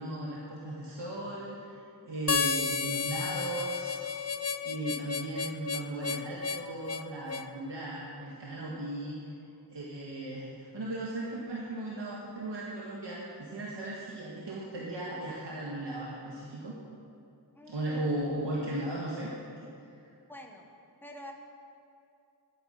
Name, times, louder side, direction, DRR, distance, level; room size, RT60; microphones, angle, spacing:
voice 1, 0.0-4.0 4.6-9.2 9.7-16.7 17.7-19.3, right 1 dB, 90° right, -5 dB, 1.7 m, -36 dB
Harmonica, 2.3-7.5, left 5 dB, 40° left, 0.5 m, -32 dB
voice 2, 17.5-17.9 20.3-20.7 21.0-21.3, left 1 dB, 5° left, 1 dB, 1.4 m, -46 dB
12.5 x 9.8 x 6.4 m, 2.6 s
wide cardioid pair, 70°, 41 cm